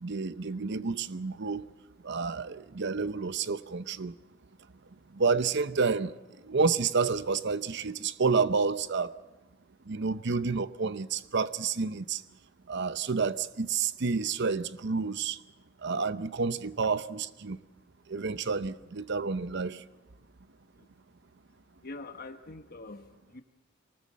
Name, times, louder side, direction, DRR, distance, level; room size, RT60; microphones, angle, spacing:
voice 1, 0.0-1.7 2.0-4.1 5.1-6.1 6.5-9.1 9.9-12.2 12.7-15.4 15.8-17.6 18.1-19.8, right 4 dB, 60° right, 0.7 m, -29 dB
voice 2, 21.8-23.4, left 2 dB, 45° left, 1.2 m, -44 dB
23.5 x 19.0 x 7.4 m
head